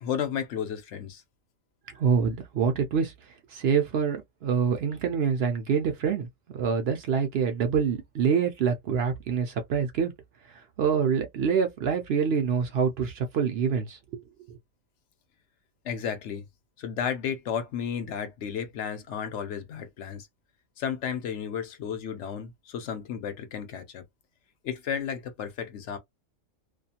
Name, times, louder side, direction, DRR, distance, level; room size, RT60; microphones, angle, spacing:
voice 1, 0.0-1.2 15.9-16.4 16.8-20.2 20.8-22.5 22.7-24.0 24.7-26.0, left 8 dB, 70° left, 0.9 m, -33 dB
voice 2, 2.0-3.1 3.5-6.3 6.5-10.1 10.8-14.2 14.5-14.6, right 6 dB, 65° right, 0.7 m, -26 dB
2.4 x 2.4 x 2.7 m
omnidirectional pair, 1.3 m